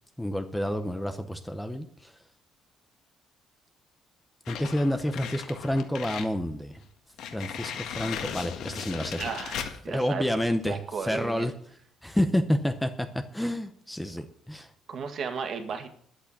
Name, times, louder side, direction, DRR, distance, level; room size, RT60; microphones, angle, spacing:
voice 1, 0.2-2.1 4.5-6.8 7.3-9.2 9.9-11.5 12.0-13.1 13.3-14.7, equal, 5° left, 7 dB, 0.7 m, -29 dB
sound 1, 4.5-6.3 6.7-6.8 7.2-9.8, left 8 dB, 70° left, 1.8 m, -37 dB
voice 2, 9.2-10.2 10.6-11.5 14.9-15.9, right 6 dB, 40° right, 6 dB, 1.8 m, -34 dB
11.5 x 8.2 x 8.5 m, 0.63 s
cardioid pair, 170°, 0 cm